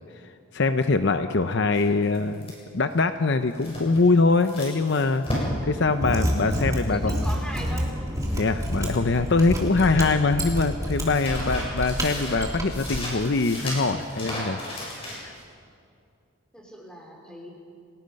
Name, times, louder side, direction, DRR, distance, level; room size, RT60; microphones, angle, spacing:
voice 1, 0.5-2.5 2.7-7.3 8.4-14.6 15.2-15.3, left 3 dB, 55° left, 9 dB, 0.7 m, -23 dB
sound 1, 1.7-8.4 8.7-9.9 10.1-15.4, left 1 dB, 25° left, 7.3 m, -35 dB
Mechanisms, 5.9-13.1, equal, 15° right, 2.8 m, -28 dB
voice 2, 6.6-7.9 16.5-17.5, equal, 5° left, -1 dB, 4.0 m, -39 dB
29.5 x 19.0 x 5.4 m, 2.4 s
head